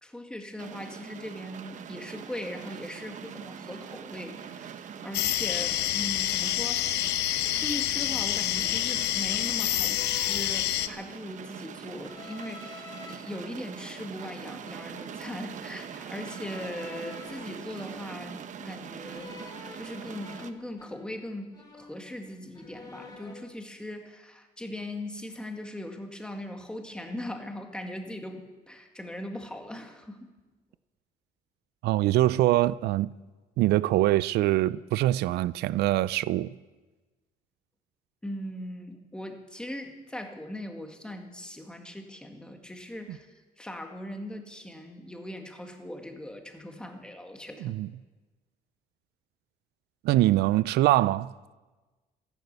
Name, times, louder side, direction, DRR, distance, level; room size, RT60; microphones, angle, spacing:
voice 1, 0.0-6.8 7.5-19.4 19.8-30.3 38.2-47.7, left 1 dB, 5° left, 1.8 m, -39 dB
sound 1, 0.6-20.5, right 8 dB, 50° right, 1.0 m, -43 dB
sound 2, 5.1-10.9, left 13 dB, 85° left, 0.8 m, -27 dB
sound 3, 8.4-9.0 9.8-11.2 12.0-13.2 13.7-15.3 16.1-18.4 19.0-21.3 21.5-22.3 22.5-23.5, left 4 dB, 25° left, 3.4 m, -48 dB
voice 2, 31.8-33.1 33.6-36.5 47.6-47.9 50.0-51.3, right 15 dB, 75° right, 0.4 m, -23 dB
14.5 x 12.0 x 8.2 m
cardioid pair, 140°, 17 cm